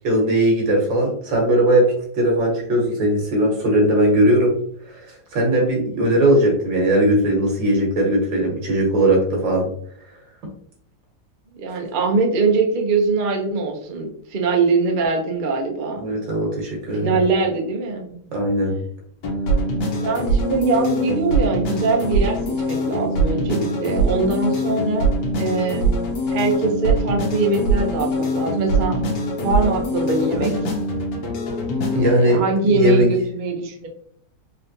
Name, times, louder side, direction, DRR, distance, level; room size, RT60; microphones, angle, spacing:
voice 1, 0.0-4.5 4.9-5.0 5.3-9.7 16.0-17.2 18.3-18.8 31.9-32.4 32.7-33.1, right 1 dB, 80° right, -1 dB, 1.9 m, -18 dB
voice 2, 11.6-16.0 16.9-18.2 20.0-29.0 29.3-30.5 31.9-33.9, right 3 dB, 65° right, 1 dB, 0.4 m, -22 dB
sound 1, 19.2-32.2, right 1 dB, 70° left, 1.5 m, -23 dB
4.2 x 3.3 x 2.6 m, 0.64 s
omnidirectional pair, 2.0 m